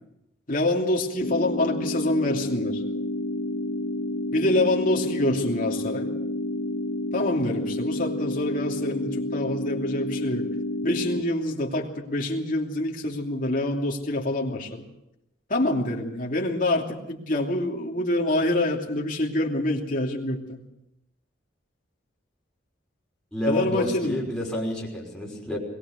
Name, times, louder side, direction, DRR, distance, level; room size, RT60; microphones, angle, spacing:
voice 1, 0.5-2.8 4.3-6.1 7.1-10.5 10.8-14.8 15.5-20.6 23.5-24.2, left 1 dB, 45° left, 0 dB, 2.9 m, -26 dB
sound 1, 1.2-11.2, left 1 dB, 75° left, 1.4 m, -30 dB
voice 2, 23.3-25.6, left 1 dB, 5° left, -4 dB, 5.6 m, -29 dB
22.0 x 18.5 x 6.5 m, 0.86 s
head